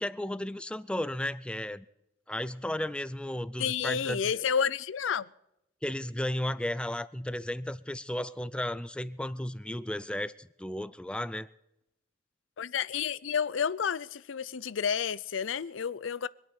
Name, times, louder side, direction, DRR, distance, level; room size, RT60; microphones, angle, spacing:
voice 1, 0.0-1.9 2.3-4.3 5.8-11.5, left 1 dB, 5° left, 0.4 m, -34 dB
voice 2, 3.6-5.3 12.6-16.3, left 7 dB, 85° left, 0.5 m, -30 dB
24.0 x 8.8 x 5.4 m
head